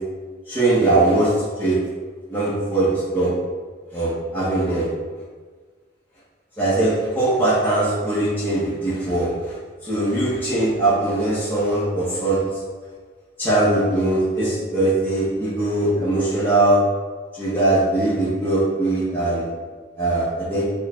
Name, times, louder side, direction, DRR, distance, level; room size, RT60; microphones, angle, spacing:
voice 1, 0.5-1.8 2.3-3.3 3.9-4.9 6.6-9.5 9.8-12.6 13.4-16.8 17.3-19.4 20.0-20.7, right 2 dB, 10° left, -12 dB, 1.0 m, -21 dB
4.6 x 2.5 x 3.4 m, 1.5 s
head